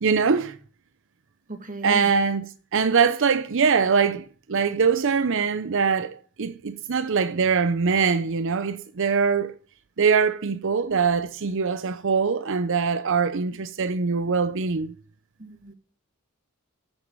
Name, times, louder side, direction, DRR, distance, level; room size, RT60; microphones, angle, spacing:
voice 1, 0.0-0.6 1.8-9.5 10.0-14.9, right 5 dB, 60° right, 0.6 m, -23 dB
voice 2, 1.5-2.1 15.4-15.7, right 3 dB, 35° right, 1.8 m, -36 dB
13.5 x 6.4 x 7.3 m
head